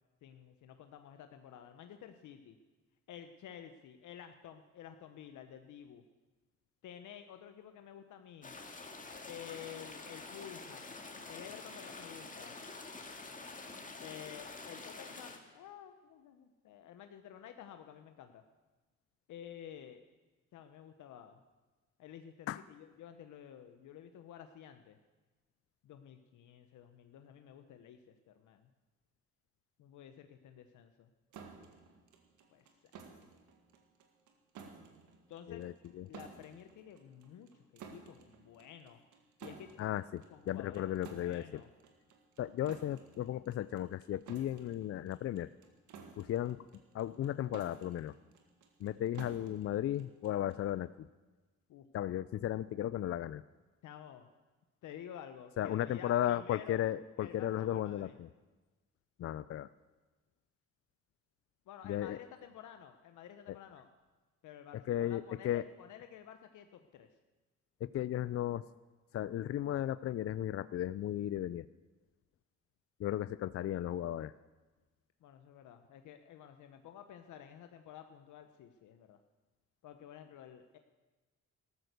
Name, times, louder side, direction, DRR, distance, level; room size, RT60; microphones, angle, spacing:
voice 1, 0.2-2.6 3.1-6.0 6.8-8.6 9.3-11.0 11.3-12.6 14.0-18.4 19.3-20.0 20.5-21.4 22.0-25.0 25.8-28.7 29.8-31.1 32.5-32.7 35.3-35.6 36.1-39.0 39.4-39.7 40.3-41.7 51.7-51.9 53.8-54.3 54.8-56.9 57.2-58.1 61.7-63.9 64.4-67.1 75.2-79.2 79.8-80.8, left 9 dB, 75° left, 7 dB, 0.9 m, -51 dB
sound 1, 8.4-15.4, left 3 dB, 25° left, 2.1 m, -47 dB
sound 2, 31.3-50.7, right 5 dB, 80° right, 1.9 m, -55 dB
voice 2, 35.5-36.1 39.8-41.6 42.4-45.5 46.2-46.6 46.9-48.1 48.8-51.1 51.9-53.4 55.6-58.3 59.2-59.7 61.8-62.2 63.5-63.6 64.9-65.6 67.8-68.6 69.1-71.7 73.0-74.3, left 12 dB, 50° left, 16 dB, 0.4 m, -35 dB
13.5 x 13.0 x 6.7 m, 1.2 s
cardioid pair, 90°, 30 cm